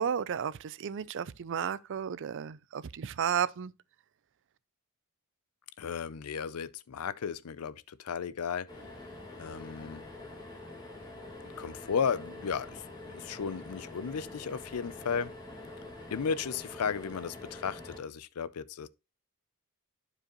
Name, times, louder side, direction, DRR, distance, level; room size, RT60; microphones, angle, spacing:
voice 1, 0.0-3.7, right 8 dB, 55° right, 0.4 m, -33 dB
voice 2, 5.8-8.7 9.4-10.1 11.6-15.3 16.1-18.9, left 6 dB, 85° left, 0.5 m, -34 dB
sound 1, 8.7-18.0, left 2 dB, 20° left, 1.9 m, -46 dB
11.5 x 4.9 x 2.9 m
head